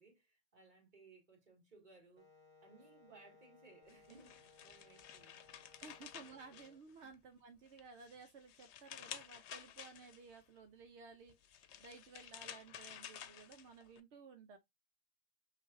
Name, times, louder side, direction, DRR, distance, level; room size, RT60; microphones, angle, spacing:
voice 1, 0.0-2.3 2.6-5.4 5.8-6.0 6.4-6.5, right 3 dB, 45° right, 1.9 m, -63 dB
Wind instrument woodwind instrument, 2.2-6.8, left 3 dB, 30° right, 0.9 m, -65 dB
sound 1, 3.9-7.3 7.7-10.4 11.3-14.0, left 10 dB, 85° left, 0.9 m, -53 dB
voice 2, 5.8-14.6, right 5 dB, 85° right, 1.0 m, -56 dB
5.8 x 2.6 x 2.6 m
omnidirectional pair, 1.1 m